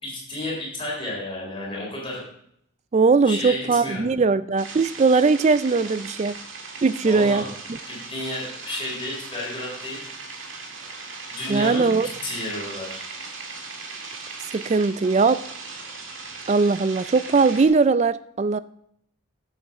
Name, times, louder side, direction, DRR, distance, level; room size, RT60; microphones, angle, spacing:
voice 1, 0.0-2.2 3.2-4.1 7.0-7.5 7.9-10.1 11.3-13.1, left 1 dB, 25° left, -4 dB, 3.7 m, -32 dB
voice 2, 2.9-6.4 6.8-7.4 11.5-12.1 14.5-15.4 16.5-18.6, right 4 dB, 35° right, 15 dB, 0.3 m, -20 dB
sound 1, 4.6-17.7, right 4 dB, 70° right, 1.8 m, -38 dB
11.0 x 7.9 x 3.6 m, 0.71 s
head